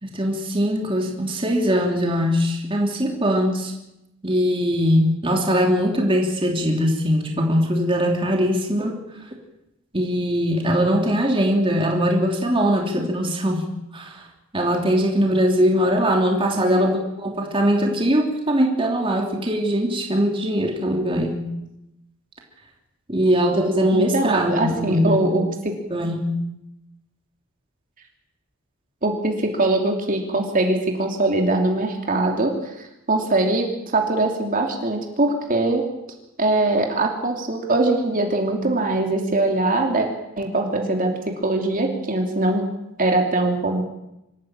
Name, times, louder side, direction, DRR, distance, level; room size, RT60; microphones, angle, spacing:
voice 1, 0.0-3.7 4.2-9.0 9.9-13.6 13.9-14.2 14.5-21.4 23.1-25.3 25.9-26.4, equal, 25° right, 1 dB, 3.1 m, -21 dB
voice 2, 16.5-16.9 23.9-25.8 29.0-32.7 33.1-33.7 33.9-35.8 36.4-40.1 40.4-42.7 43.0-43.8, right 2 dB, 40° right, 2 dB, 3.1 m, -22 dB
25.5 x 14.0 x 9.0 m, 0.90 s
head